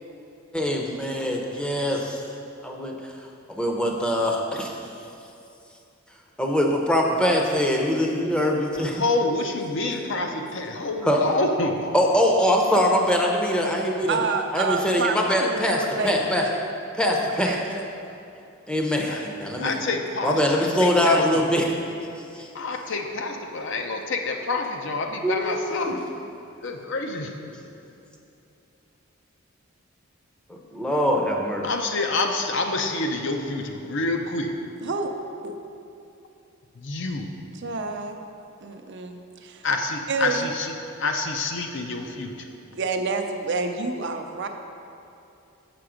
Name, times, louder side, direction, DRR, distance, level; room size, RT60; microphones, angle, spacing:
voice 1, 0.5-2.2 2.6-3.0 3.5-4.7 6.4-8.9 11.1-11.2 11.9-14.2 14.5-16.5 17.0-17.6 18.7-19.7 20.2-21.7 22.3-22.5 25.2-25.9 30.5-31.6, equal, 5° left, 0 dB, 0.6 m, -23 dB
voice 2, 8.7-12.0 19.1-19.2 19.6-21.5 22.5-26.0 26.6-27.4 31.6-34.6 36.7-37.3 39.6-42.5, left 3 dB, 60° left, 4 dB, 0.6 m, -28 dB
voice 3, 14.1-16.7 17.2-17.6 34.8-35.1 35.4-35.6 37.6-38.3 38.6-39.7 40.1-40.5 42.7-44.5, right 4 dB, 55° right, 4 dB, 0.5 m, -28 dB
6.9 x 5.9 x 5.0 m, 2.7 s
head